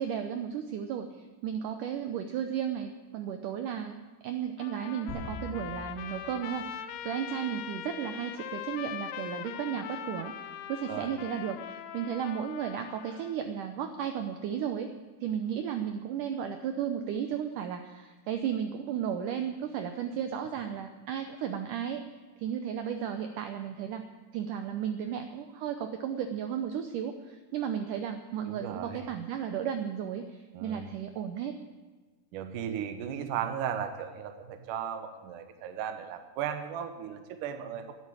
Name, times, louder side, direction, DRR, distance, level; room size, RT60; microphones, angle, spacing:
voice 1, 0.0-4.0 4.2-14.9 15.2-22.0 22.4-24.0 24.3-31.6, right 8 dB, 85° right, 6 dB, 1.8 m, -34 dB
Trumpet, 4.6-13.4, left 10 dB, 85° left, 2.7 m, -41 dB
sound 1, 5.1-7.0, left 1 dB, 15° left, 3.1 m, -43 dB
voice 2, 28.5-29.0 30.5-30.8 32.3-37.9, right 8 dB, 65° right, 7 dB, 2.3 m, -36 dB
11.5 x 11.0 x 8.8 m, 1.3 s
omnidirectional pair, 4.7 m